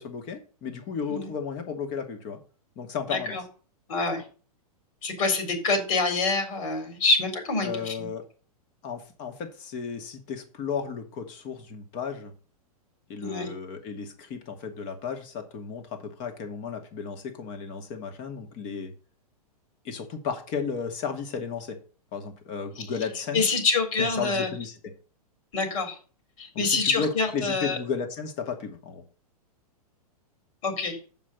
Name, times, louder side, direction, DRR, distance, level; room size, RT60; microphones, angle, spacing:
voice 1, 0.0-2.4 2.8-3.4 7.6-8.2 8.8-12.3 13.1-18.9 19.8-21.8 22.1-23.6 24.0-24.8 26.5-29.0, left 6 dB, 40° left, 6 dB, 2.4 m, -34 dB
voice 2, 3.1-3.4 3.9-4.2 5.0-8.1 13.2-13.5 22.8-22.9 23.3-24.5 25.5-26.0 26.4-27.8 30.6-31.0, left 3 dB, 60° left, 5 dB, 3.9 m, -26 dB
7.4 x 5.7 x 6.7 m, 0.38 s
hypercardioid pair, 120°, 20 cm